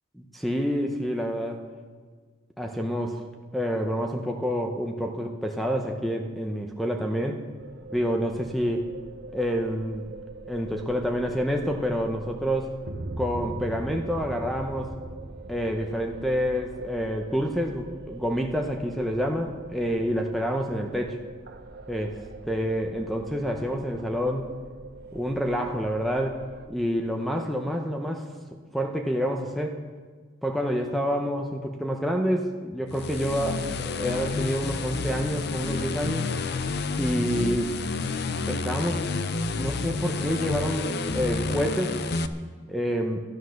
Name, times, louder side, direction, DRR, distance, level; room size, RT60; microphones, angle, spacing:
voice 1, 0.3-1.6 2.6-3.2 3.5-7.4 7.9-8.9 9.3-10.1 10.5-12.8 13.2-14.9 15.5-21.2 21.9-22.2 22.4-24.5 25.1-26.4 26.7-28.3 28.7-29.8 30.4-36.4 37.0-37.8 38.5-39.1 39.6-42.0 42.7-43.2, equal, ahead, 3 dB, 0.8 m, -28 dB
sound 1, 7.6-26.7, right 2 dB, 50° right, 0.8 m, -42 dB
sound 2, 32.9-42.3, left 3 dB, 55° left, 0.6 m, -30 dB
11.5 x 11.5 x 6.4 m, 1.5 s
head